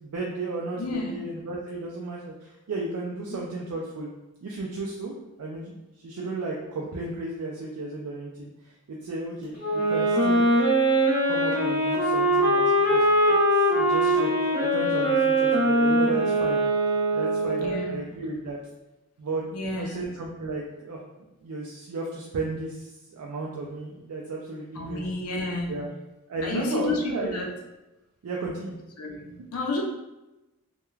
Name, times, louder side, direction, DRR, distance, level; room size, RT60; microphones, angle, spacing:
voice 1, 0.0-4.1 4.4-5.1 5.4-5.8 6.0-10.4 11.2-13.4 13.7-16.6 17.1-18.6 19.2-21.0 21.4-25.1 25.7-25.9 26.3-27.4 28.2-28.7, right 2 dB, 85° right, -3 dB, 0.4 m, -34 dB
voice 2, 0.8-1.2 3.3-3.4 17.6-18.0 19.5-20.1 24.7-25.8 26.4-27.5 29.0-29.8, left 2 dB, 80° left, 0 dB, 0.6 m, -31 dB
Wind instrument woodwind instrument, 9.6-17.9, right 1 dB, 10° right, 1.0 m, -22 dB
3.0 x 2.2 x 2.3 m, 1.0 s
head